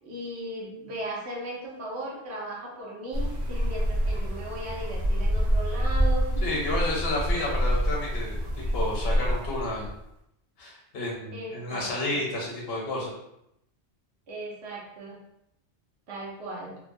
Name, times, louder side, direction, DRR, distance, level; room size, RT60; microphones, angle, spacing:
voice 1, 0.0-7.0 11.3-12.2 14.3-15.2 16.1-16.8, right 1 dB, 70° right, -3 dB, 1.0 m, -37 dB
sound 1, 3.1-10.0, equal, 55° right, 0.5 m, -27 dB
voice 2, 6.4-9.9 10.6-13.1, left 1 dB, 60° left, -2 dB, 1.0 m, -31 dB
2.8 x 2.1 x 2.5 m, 0.80 s
omnidirectional pair, 1.2 m